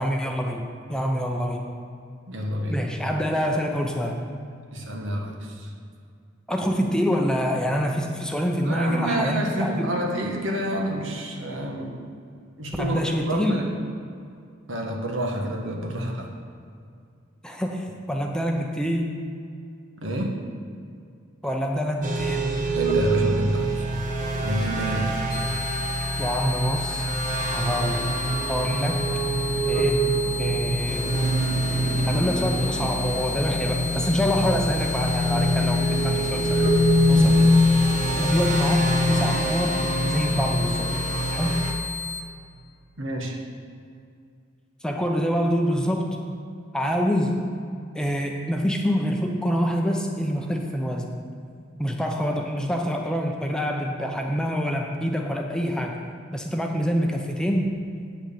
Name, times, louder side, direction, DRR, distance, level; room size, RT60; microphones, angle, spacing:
voice 1, 0.0-1.7 2.7-4.2 6.5-9.9 12.8-13.7 17.4-19.1 21.4-22.5 26.2-27.1 27.5-28.0 28.5-29.0 29.7-30.1 30.4-31.1 32.0-36.7 37.1-37.5 38.2-41.0 41.3-41.7 44.8-46.1 46.7-47.5 47.9-51.2 51.8-56.0 56.3-57.8, equal, 5° left, 1 dB, 0.7 m, -26 dB
voice 2, 2.3-2.8 4.7-5.7 8.6-12.0 12.6-13.7 14.7-16.3 20.0-20.4 22.7-23.7 24.4-25.3 43.0-43.4, right 1 dB, 75° right, 1 dB, 1.5 m, -28 dB
sound 1, 22.0-41.7, equal, 40° right, 1.2 m, -24 dB
sound 2, 25.3-42.2, left 5 dB, 25° left, 1.2 m, -33 dB
8.7 x 6.4 x 7.0 m, 2.3 s
head